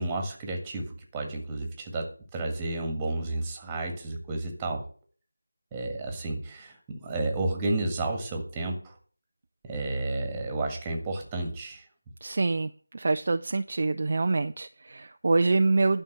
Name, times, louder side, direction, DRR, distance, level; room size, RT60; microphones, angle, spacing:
voice 1, 0.0-4.9 5.7-9.0 9.6-11.8, right 2 dB, 10° right, 3 dB, 1.8 m, -31 dB
voice 2, 12.2-16.0, right 3 dB, 40° right, 8 dB, 0.4 m, -26 dB
11.5 x 5.6 x 7.8 m, 0.42 s
figure-of-eight pair, 165°, 0 cm